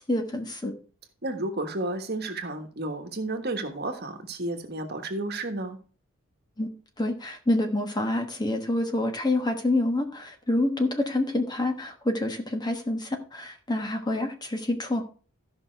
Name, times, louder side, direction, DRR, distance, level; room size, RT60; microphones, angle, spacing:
voice 1, 0.1-0.7 6.6-15.0, left 1 dB, 20° left, 5 dB, 1.2 m, -27 dB
voice 2, 1.2-5.8, right 2 dB, 45° right, 6 dB, 1.4 m, -32 dB
13.5 x 5.8 x 4.5 m, 0.39 s
head